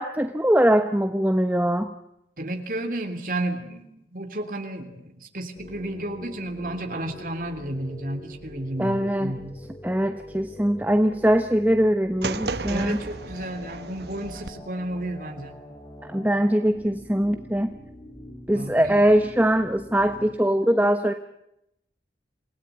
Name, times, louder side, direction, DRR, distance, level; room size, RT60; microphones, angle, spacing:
voice 1, 0.0-1.9 8.8-9.5 9.8-13.0 16.1-17.7 18.5-21.1, equal, 10° right, 7 dB, 1.0 m, -22 dB
voice 2, 2.4-9.5 12.7-15.5 18.5-18.9, right 1 dB, 50° right, 6 dB, 3.3 m, -32 dB
sound 1, 5.6-20.3, equal, 25° left, 5.1 m, -44 dB
sound 2, 12.2-14.5, right 3 dB, 70° right, 1.2 m, -33 dB
27.5 x 17.5 x 9.3 m, 0.83 s
head